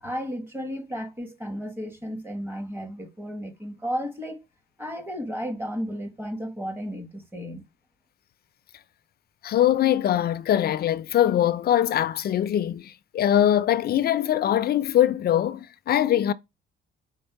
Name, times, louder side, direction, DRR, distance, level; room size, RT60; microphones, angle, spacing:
voice 1, 0.0-4.4 4.8-7.6, equal, 10° right, 1.1 m, -33 dB
voice 2, 9.4-16.3, left 11 dB, 50° left, 0.4 m, -22 dB
5.2 x 2.1 x 4.5 m
cardioid pair, 90°, 20 cm